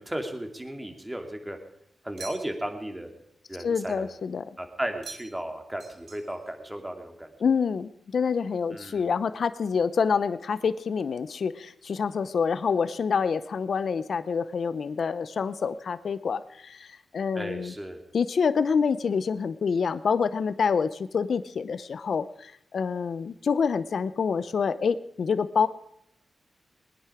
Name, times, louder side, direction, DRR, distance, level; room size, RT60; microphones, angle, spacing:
voice 1, 0.0-1.6 2.0-3.1 3.5-4.1 4.6-7.3 8.7-9.0 17.3-18.0, right 1 dB, 10° right, 4 dB, 2.5 m, -35 dB
sound 1, 2.2-2.8 5.0-5.5 5.8-6.6, right 3 dB, 70° right, 2.4 m, -45 dB
voice 2, 3.6-4.4 7.4-17.7 18.1-25.7, left 6 dB, 70° left, 14 dB, 0.7 m, -27 dB
21.0 x 10.0 x 4.9 m, 0.74 s
cardioid pair, 65°, 0 cm